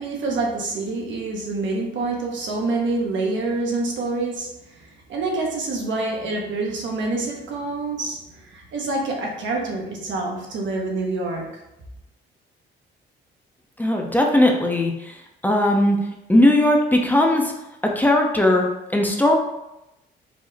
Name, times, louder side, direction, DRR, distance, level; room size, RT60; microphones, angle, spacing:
voice 1, 0.0-11.6, right 3 dB, 70° right, -1 dB, 1.1 m, -27 dB
voice 2, 13.8-15.1 15.4-16.0 16.3-17.5 17.8-18.7 18.9-19.3, left 1 dB, 10° left, 1 dB, 0.6 m, -18 dB
4.9 x 2.1 x 3.9 m, 0.90 s
cardioid pair, 90°, 20 cm